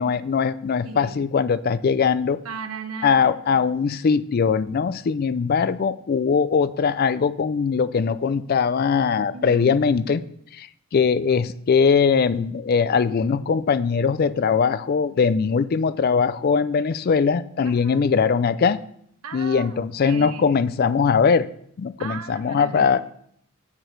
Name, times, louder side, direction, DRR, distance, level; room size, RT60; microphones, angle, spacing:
voice 1, 0.0-2.4 3.0-10.2 10.5-18.8 19.3-21.5 21.8-23.0, left 5 dB, 45° left, 15 dB, 0.3 m, -21 dB
voice 2, 0.8-1.2 2.4-4.0 9.3-9.8 17.6-18.1 19.2-20.6 22.0-23.1, right 4 dB, 85° right, 8 dB, 0.8 m, -37 dB
6.8 x 6.6 x 4.5 m, 0.68 s
head